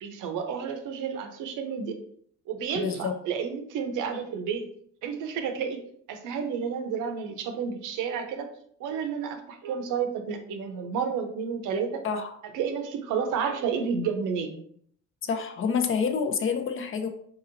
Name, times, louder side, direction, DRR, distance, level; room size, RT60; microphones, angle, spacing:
voice 1, 0.0-1.9 2.5-4.6 5.0-8.5 8.8-12.0 12.5-14.6, right 6 dB, 85° right, 6 dB, 0.6 m, -31 dB
voice 2, 2.8-3.1 12.0-12.3 15.2-17.1, left 6 dB, 45° left, 7 dB, 0.6 m, -28 dB
4.0 x 2.8 x 2.6 m, 0.64 s
cardioid pair, 90°, 30 cm